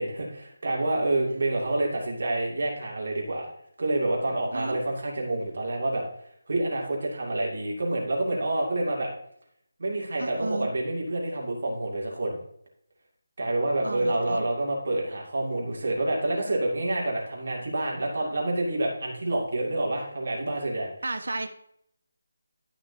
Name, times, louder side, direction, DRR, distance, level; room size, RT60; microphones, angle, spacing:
voice 1, 0.0-3.5 3.8-6.0 6.5-9.1 9.8-12.4 13.4-20.9, right 2 dB, 55° right, -2 dB, 2.4 m, -28 dB
voice 2, 10.2-10.7 13.8-14.5 21.0-21.5, right 2 dB, 70° right, 7 dB, 1.2 m, -33 dB
12.0 x 5.8 x 2.8 m, 0.70 s
figure-of-eight pair, 175°, 0 cm